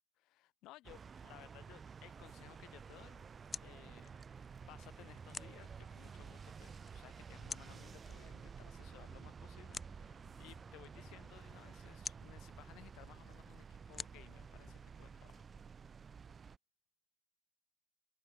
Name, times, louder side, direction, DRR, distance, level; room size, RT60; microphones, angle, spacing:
voice 1, 0.2-3.3 3.6-15.5, left 17 dB, 35° left, 3.8 m, -59 dB
sound 1, 0.8-16.6, right 6 dB, 20° right, 0.5 m, -52 dB
sound 2, 2.8-15.6, left 4 dB, 15° left, 3.3 m, -53 dB
figure-of-eight pair, 90°, 0 cm